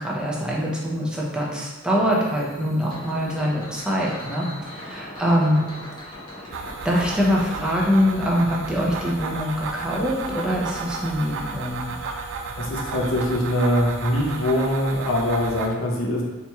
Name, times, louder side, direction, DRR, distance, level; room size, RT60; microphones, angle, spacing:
voice 1, 0.0-5.6 6.0-6.1 6.4-6.5 6.8-12.2, equal, 5° right, -4 dB, 0.5 m, -24 dB
sound 1, 2.1-9.1, left 1 dB, 20° left, 0.8 m, -41 dB
sound 2, 6.5-15.7, right 4 dB, 60° right, 0.3 m, -33 dB
voice 2, 12.6-16.2, left 1 dB, 65° left, -2 dB, 0.7 m, -23 dB
4.1 x 2.9 x 2.2 m, 1.2 s
head